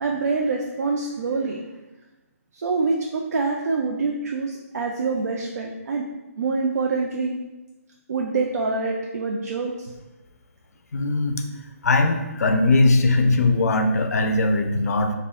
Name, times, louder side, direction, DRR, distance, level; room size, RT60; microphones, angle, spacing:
voice 1, 0.0-1.6 2.5-6.1 6.4-7.4 8.1-9.9, right 4 dB, 80° right, 0 dB, 0.3 m, -25 dB
voice 2, 10.9-11.4 11.8-15.1, left 2 dB, 75° left, 5 dB, 0.4 m, -20 dB
2.4 x 2.0 x 3.4 m, 1.1 s
hypercardioid pair, 165°, 8 cm